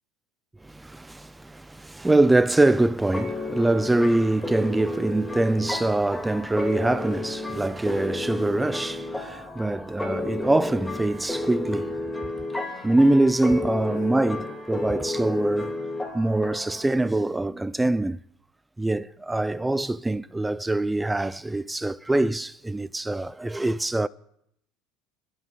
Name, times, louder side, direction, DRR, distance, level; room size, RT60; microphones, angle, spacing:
voice 1, 0.6-12.0 12.8-15.8 16.1-18.2 18.8-24.1, right 2 dB, 10° right, 0.4 m, -24 dB
sound 1, 3.1-16.8, left 2 dB, 5° left, 2.2 m, -32 dB
29.0 x 11.5 x 2.4 m
supercardioid pair, 110°, 0 cm